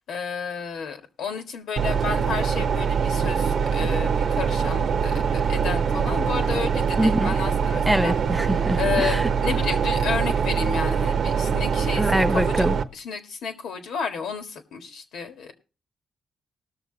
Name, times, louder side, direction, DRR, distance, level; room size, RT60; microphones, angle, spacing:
voice 1, 0.1-8.1 8.8-12.6 12.9-15.5, left 6 dB, 80° left, 1.8 m, -31 dB
sound 1, 1.8-12.8, right 6 dB, 65° right, 0.8 m, -23 dB
voice 2, 7.0-7.3 7.9-9.3 12.0-12.8, right 1 dB, 5° right, 0.6 m, -24 dB
19.5 x 6.7 x 3.9 m
cardioid pair, 85°, 0 cm